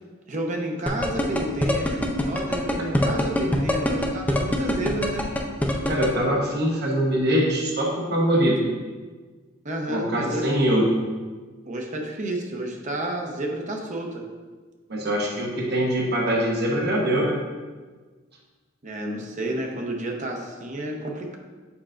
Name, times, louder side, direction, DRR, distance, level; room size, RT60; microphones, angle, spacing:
voice 1, 0.3-5.3 9.6-10.5 11.7-14.2 18.8-21.4, right 1 dB, 40° right, 2 dB, 0.8 m, -31 dB
sound 1, 0.9-6.1, equal, 10° left, 0.5 m, -23 dB
voice 2, 5.9-8.6 9.9-10.8 14.9-17.4, equal, 55° right, -1 dB, 1.1 m, -23 dB
7.1 x 5.5 x 2.5 m, 1.4 s
head